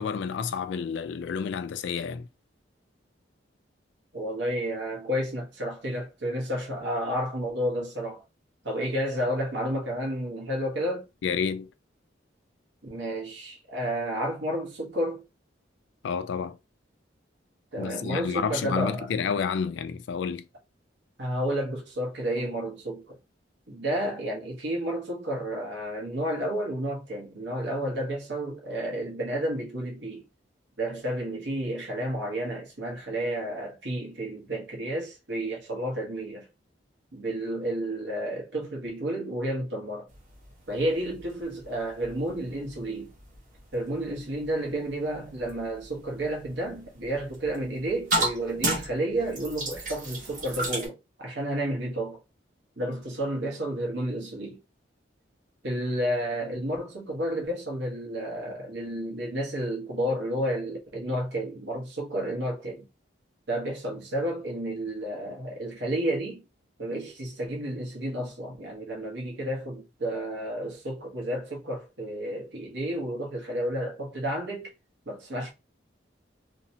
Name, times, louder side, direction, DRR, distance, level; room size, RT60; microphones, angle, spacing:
voice 1, 0.0-2.3 11.2-11.7 16.0-16.6 17.8-20.5, left 6 dB, 75° left, 0.3 m, -30 dB
voice 2, 4.1-8.2 8.6-11.1 12.8-15.3 17.7-19.1 21.2-23.2 23.7-30.2 30.8-36.5 37.1-40.1 40.7-43.1 43.7-52.2 52.8-54.6 55.6-62.9 63.5-66.4 66.8-74.7 75.1-75.5, right 1 dB, 70° right, 0.9 m, -31 dB
sound 1, 40.1-50.9, right 2 dB, 45° right, 1.0 m, -35 dB
2.8 x 2.1 x 2.7 m
head